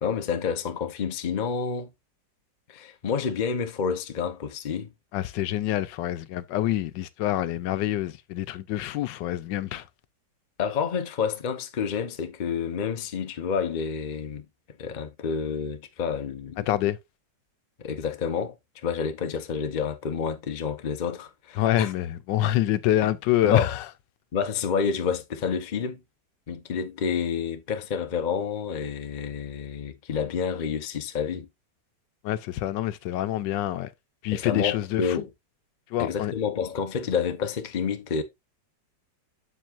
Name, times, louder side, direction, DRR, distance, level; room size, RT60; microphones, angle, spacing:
voice 1, 0.0-1.9 2.7-4.9 10.6-14.5 14.8-16.7 17.8-21.9 23.4-23.7 24.3-26.0 26.5-31.5 34.3-35.3 36.0-38.2, left 6 dB, 40° left, 0.6 m, -29 dB
voice 2, 5.1-9.9 16.7-17.0 21.6-23.8 32.2-33.9 34.2-35.2 35.9-36.3, left 13 dB, 85° left, 1.3 m, -26 dB
7.4 x 7.0 x 2.4 m
omnidirectional pair, 1.9 m